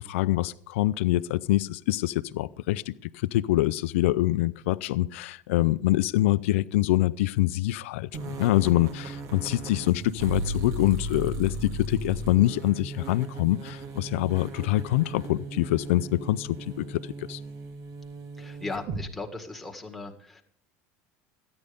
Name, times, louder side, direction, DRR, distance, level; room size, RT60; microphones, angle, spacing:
voice 1, 0.0-17.4, left 16 dB, 80° left, 0.4 m, -25 dB
sound 1, 8.1-19.0, right 2 dB, 55° right, 1.9 m, -36 dB
voice 2, 18.4-20.4, left 3 dB, ahead, 1.9 m, -37 dB
13.5 x 9.7 x 5.2 m
supercardioid pair, 95°, 7 cm